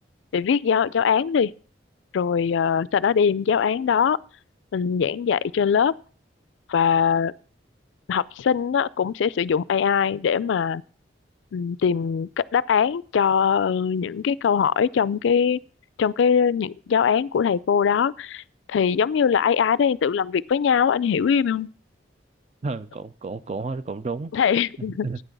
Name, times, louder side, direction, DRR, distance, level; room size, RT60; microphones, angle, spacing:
voice 1, 0.3-1.5 2.1-4.2 4.7-5.9 6.7-7.3 8.1-10.8 11.5-15.6 16.0-18.4 18.7-21.7 24.3-25.1, left 7 dB, 80° left, 0.3 m, -22 dB
voice 2, 22.6-24.3 24.8-25.2, right 3 dB, 35° right, 0.4 m, -31 dB
9.2 x 6.1 x 6.6 m
head